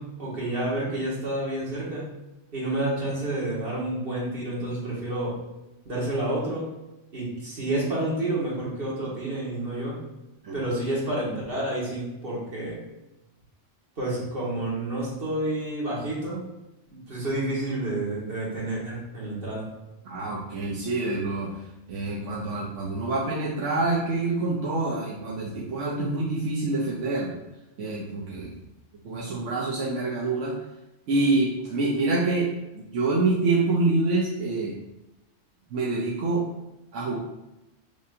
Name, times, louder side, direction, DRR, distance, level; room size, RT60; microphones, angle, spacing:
voice 1, 0.0-2.0 2.5-5.4 5.8-6.7 7.1-10.0 10.5-12.8 14.0-16.4 16.9-19.6, right 1 dB, 50° right, -6 dB, 1.7 m, -29 dB
voice 2, 20.0-27.3 27.8-28.6 29.0-30.6 31.1-32.5 32.7-34.8 35.7-36.5 36.9-37.2, right 2 dB, 80° right, -4 dB, 1.0 m, -26 dB
6.5 x 2.7 x 2.5 m, 0.95 s
omnidirectional pair, 1.3 m